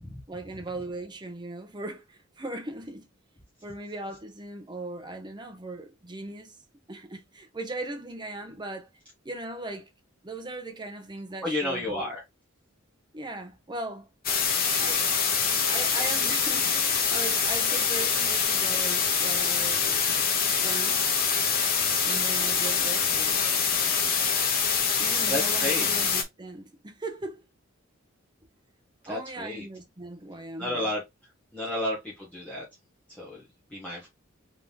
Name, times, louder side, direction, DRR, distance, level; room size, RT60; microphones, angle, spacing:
voice 1, 0.3-3.1 3.6-6.5 6.9-8.9 9.2-9.9 10.2-12.1 13.1-14.1 14.8-15.1 15.7-20.1 20.6-21.1 22.0-23.4 25.0-27.5 29.1-30.9 31.6-31.7, right 2 dB, 20° right, 0.8 m, -38 dB
voice 2, 11.4-12.2 25.2-26.0 29.0-29.6 30.6-31.0 31.5-32.6 33.2-33.4 33.7-34.1, left 1 dB, 5° left, 1.6 m, -32 dB
sound 1, 14.2-26.2, left 6 dB, 45° left, 1.0 m, -25 dB
3.8 x 3.5 x 2.9 m
head